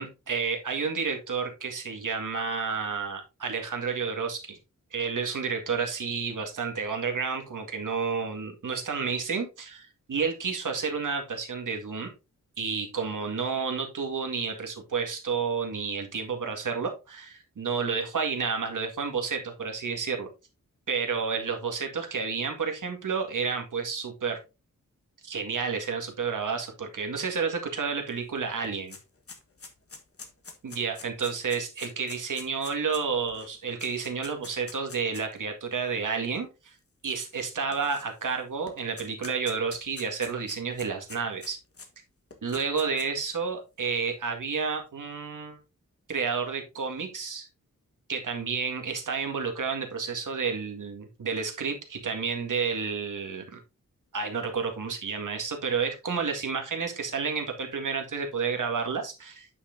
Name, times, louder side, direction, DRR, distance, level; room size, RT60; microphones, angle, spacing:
voice 1, 0.0-4.6 4.9-12.1 12.6-20.3 20.9-24.4 25.2-29.0 30.6-36.7 37.0-41.6 42.4-45.6 46.1-47.5 48.1-53.6 54.1-59.5, right 5 dB, 80° right, 3 dB, 2.0 m, -30 dB
sound 1, 28.1-28.2 28.4-35.4 36.1-36.2 37.3-38.3 38.7-41.9 42.3-43.3, left 4 dB, 45° left, 1.5 m, -46 dB
9.7 x 5.8 x 2.7 m, 0.27 s
wide cardioid pair, 115°, 31 cm